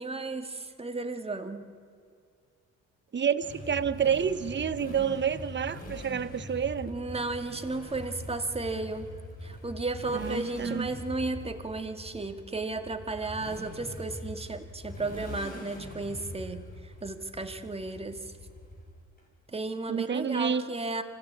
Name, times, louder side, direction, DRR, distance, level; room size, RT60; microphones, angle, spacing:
voice 1, 0.0-1.7 6.9-9.1 9.4-18.3 19.5-21.0, right 3 dB, 20° right, 6 dB, 2.0 m, -34 dB
voice 2, 3.1-6.9 10.1-10.9 19.9-20.6, right 7 dB, 35° right, 14 dB, 1.1 m, -29 dB
Motorcycle, 3.4-19.2, left 1 dB, 30° left, 5.6 m, -43 dB
25.5 x 16.0 x 8.6 m, 2.3 s
cardioid pair, 90°, 30 cm